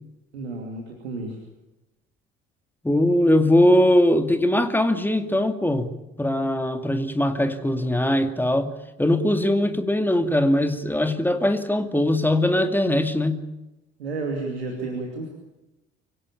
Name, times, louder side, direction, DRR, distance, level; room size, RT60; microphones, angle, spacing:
voice 1, 0.3-1.4 14.0-15.3, right 3 dB, 80° right, 2.7 m, -31 dB
voice 2, 2.8-8.7 9.0-13.4, left 1 dB, 5° left, 2.4 m, -21 dB
25.0 x 17.0 x 8.8 m
figure-of-eight pair, 50°, 32 cm